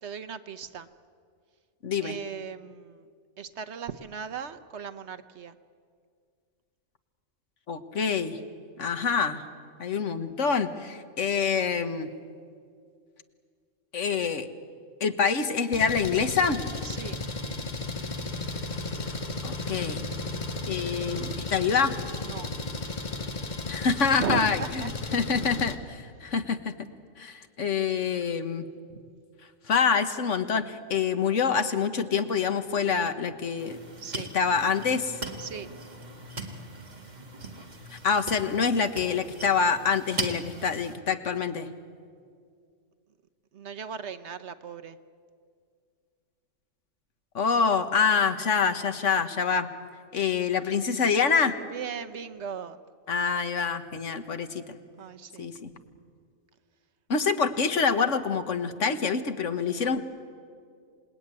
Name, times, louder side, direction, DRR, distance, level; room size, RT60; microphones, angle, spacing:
voice 1, 0.0-0.9 2.0-3.1 3.4-5.6 16.8-17.2 22.2-22.5 24.2-24.9 28.9-29.0 34.0-34.3 35.4-35.7 36.1-36.2 43.5-45.0 51.6-52.8 53.9-54.0 55.0-55.5, right 7 dB, 65° right, 9 dB, 1.2 m, -37 dB
voice 2, 1.8-2.2 7.7-8.4 8.8-9.4 9.8-12.1 13.9-14.5 15.0-16.6 19.4-20.1 20.7-21.9 23.7-24.8 25.1-26.7 27.2-28.7 29.7-33.8 34.2-35.2 37.9-41.7 47.3-49.7 50.1-51.5 53.1-54.8 55.4-55.7 57.1-60.0, left 6 dB, 80° left, 9 dB, 1.6 m, -26 dB
Engine, 15.7-25.7, left 3 dB, 40° left, 1.5 m, -34 dB
sound 1, 33.6-41.0, right 2 dB, 35° right, 1.8 m, -39 dB
27.5 x 19.5 x 9.7 m, 2.2 s
omnidirectional pair, 1.3 m